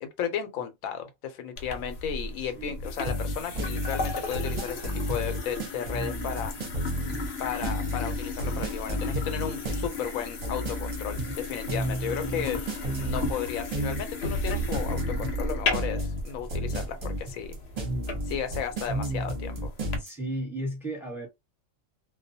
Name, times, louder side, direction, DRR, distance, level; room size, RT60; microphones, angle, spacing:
voice 1, 0.0-6.5 7.4-12.6 12.9-17.6 18.3-19.7, left 8 dB, 90° left, 1.0 m, -34 dB
sound 1, 1.6-20.0, left 3 dB, 60° left, 0.8 m, -35 dB
voice 2, 2.4-2.8 20.0-21.3, right 1 dB, ahead, 0.8 m, -34 dB
sound 2, 3.0-20.1, right 1 dB, 40° right, 0.7 m, -31 dB
2.3 x 2.1 x 2.6 m
omnidirectional pair, 1.4 m